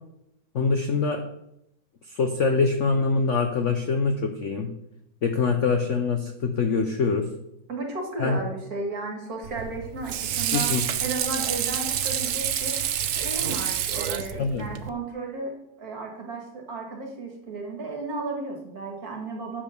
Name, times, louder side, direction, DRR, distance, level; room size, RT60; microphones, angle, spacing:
voice 1, 0.5-1.2 2.1-4.7 5.2-7.3 8.2-8.4 10.5-10.8 14.4-14.7, left 4 dB, 65° left, 5 dB, 0.7 m, -24 dB
voice 2, 7.7-10.7 11.0-12.8 13.2-15.5 15.8-19.6, right 3 dB, 50° right, 1 dB, 2.4 m, -34 dB
Water / Sink (filling or washing), 9.4-14.9, right 9 dB, 90° right, 0.6 m, -28 dB
8.5 x 5.3 x 6.6 m, 0.82 s
omnidirectional pair, 2.2 m